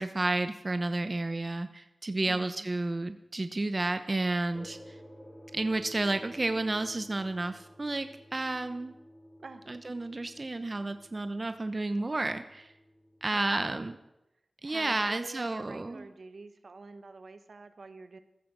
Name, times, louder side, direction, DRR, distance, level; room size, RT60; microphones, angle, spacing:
voice 1, 0.0-5.0 5.5-8.9 9.7-12.7 13.2-14.0 14.6-16.1, right 2 dB, 45° right, 9 dB, 0.9 m, -31 dB
voice 2, 2.3-2.7 9.4-9.6 13.3-13.9 14.6-18.2, right 3 dB, 75° right, 10 dB, 1.3 m, -47 dB
sound 1, 4.5-13.3, equal, 5° left, 3.1 m, -52 dB
14.5 x 14.5 x 6.2 m, 0.90 s
cardioid pair, 45°, 0 cm